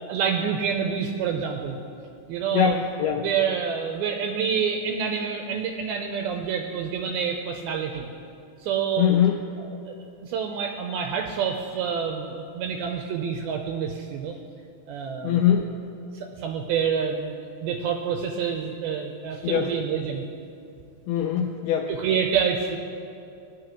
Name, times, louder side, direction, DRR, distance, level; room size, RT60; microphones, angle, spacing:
voice 1, 0.1-1.8 2.3-2.8 3.2-8.1 8.6-9.1 9.6-14.3 14.9-15.4 16.1-17.3 17.6-20.2 21.4-21.5 21.9-22.8, right 7 dB, 85° right, 3 dB, 2.2 m, -27 dB
voice 2, 2.5-3.3 9.0-9.4 15.2-15.7 19.4-19.7 21.1-21.9, left 9 dB, 80° left, 2 dB, 2.4 m, -22 dB
19.5 x 10.5 x 3.0 m, 2.6 s
omnidirectional pair, 4.9 m